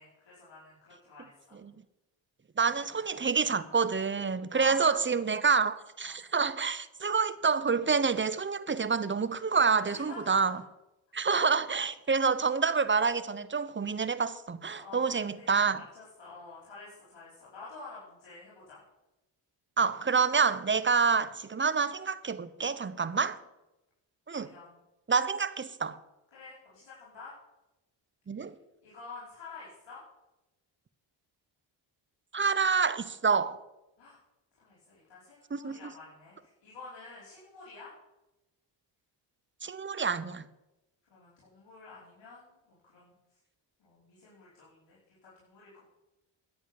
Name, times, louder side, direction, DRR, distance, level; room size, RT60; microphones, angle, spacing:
voice 1, 0.0-1.6 4.5-5.1 6.0-6.2 9.9-10.6 11.3-11.5 14.7-18.8 23.1-23.2 24.3-24.8 26.3-27.3 28.8-30.0 34.0-34.2 34.5-37.9 41.1-43.1 43.8-45.9, left 4 dB, 60° left, 5.1 m, -49 dB
voice 2, 2.6-10.6 11.1-15.8 19.8-23.4 24.3-24.5 25.1-26.0 28.3-28.5 32.3-33.6 35.5-35.8 39.6-40.5, right 5 dB, 25° right, 0.8 m, -28 dB
11.5 x 8.2 x 7.2 m
cardioid pair, 75°, 49 cm